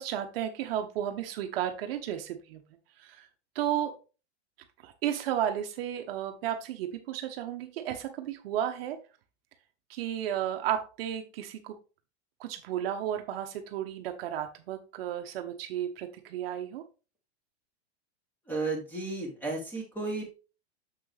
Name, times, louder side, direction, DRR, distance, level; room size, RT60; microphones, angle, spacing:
voice 1, 0.0-2.6 3.0-3.3 3.5-3.9 4.8-9.0 9.9-11.8 12.4-16.8, right 10 dB, 60° right, 6 dB, 1.1 m, -33 dB
voice 2, 18.5-20.2, right 3 dB, 5° left, 0 dB, 2.6 m, -33 dB
6.7 x 6.0 x 3.3 m, 0.32 s
supercardioid pair, 150°, 33 cm